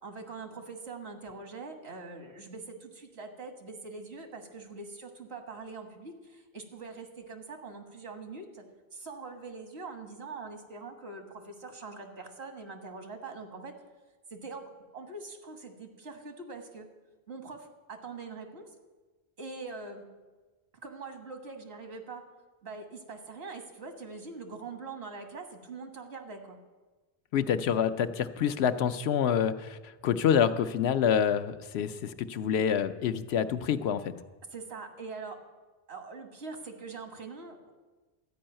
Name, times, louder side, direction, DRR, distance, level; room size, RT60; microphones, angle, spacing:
voice 1, 0.0-8.6 8.9-13.7 14.3-16.9 17.3-18.7 19.4-20.1 20.8-22.2 22.6-26.6 34.5-35.4 35.9-37.7, right 4 dB, 85° right, 5 dB, 1.7 m, -43 dB
voice 2, 27.3-34.1, left 8 dB, 85° left, 11 dB, 0.9 m, -27 dB
12.5 x 5.5 x 8.8 m, 1.3 s
omnidirectional pair, 1.1 m